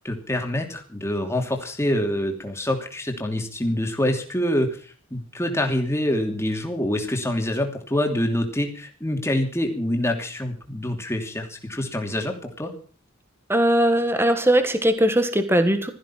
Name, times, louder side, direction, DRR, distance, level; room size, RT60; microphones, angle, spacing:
voice 1, 0.0-12.7, left 1 dB, 15° left, 3 dB, 2.9 m, -26 dB
voice 2, 13.5-15.9, right 1 dB, 10° right, 9 dB, 1.5 m, -19 dB
16.5 x 14.0 x 5.8 m, 0.42 s
head